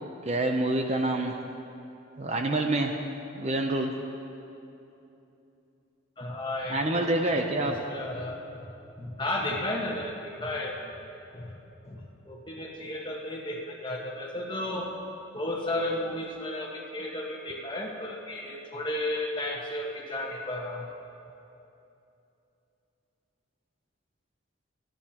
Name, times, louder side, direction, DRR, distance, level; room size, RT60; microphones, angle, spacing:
voice 1, 0.2-1.3 2.2-2.9 3.3-3.9 6.7-7.7, right 2 dB, 30° right, 4 dB, 0.6 m, -27 dB
voice 2, 6.2-8.4 9.0-10.8 11.3-11.5 11.8-14.9 15.3-20.8, left 1 dB, 25° left, -2 dB, 1.4 m, -33 dB
25.5 x 10.5 x 2.9 m, 2.8 s
head